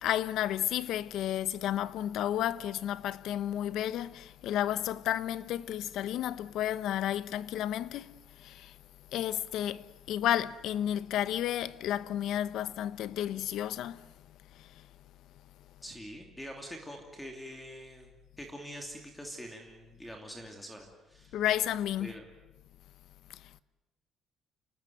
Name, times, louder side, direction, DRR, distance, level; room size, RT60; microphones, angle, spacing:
voice 1, 0.0-8.1 8.4-8.7 9.1-9.8 10.1-14.0 21.3-22.1, left 11 dB, 70° left, 0.9 m, -32 dB
voice 2, 15.8-21.4 22.0-22.3, equal, 5° left, 2.9 m, -45 dB
28.5 x 19.0 x 9.2 m
cardioid pair, 150°, 0 cm